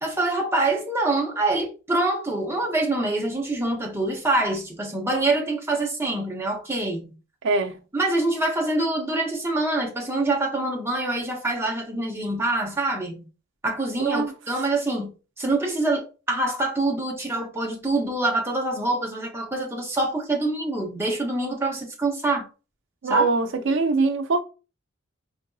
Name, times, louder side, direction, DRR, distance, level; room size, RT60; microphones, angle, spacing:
voice 1, 0.0-7.1 7.9-13.3 13.6-15.1 15.4-22.5 23.1-23.2, right 2 dB, 10° right, 0.6 m, -25 dB
voice 2, 7.4-7.8 14.0-14.3 23.0-24.4, right 3 dB, 60° right, 0.4 m, -22 dB
4.6 x 2.5 x 2.3 m
head